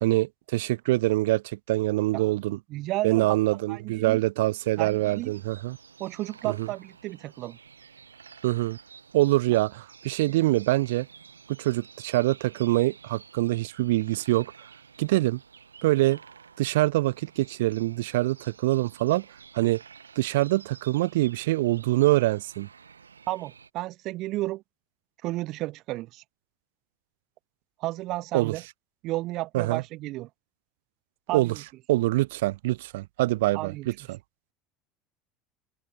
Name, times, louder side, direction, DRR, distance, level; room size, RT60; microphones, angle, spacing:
voice 1, 0.0-2.6 3.0-5.8 6.4-6.7 8.4-8.8 9.1-11.1 11.6-14.5 15.0-15.4 15.8-16.2 16.6-19.3 19.5-19.8 20.2-22.7 28.3-28.5 29.5-29.8 31.3-31.5 31.9-34.2, right 18 dB, 70° right, 0.4 m, -24 dB
voice 2, 2.7-3.4 3.7-4.2 4.8-5.3 6.0-7.6 9.5-9.6 23.3-24.6 25.2-26.2 27.8-28.6 29.0-30.3 31.3-31.6 33.5-33.9, right 18 dB, 55° right, 0.9 m, -32 dB
sound 1, 4.6-23.7, right 6 dB, 90° right, 3.5 m, -52 dB
hypercardioid pair, 75°, 0 cm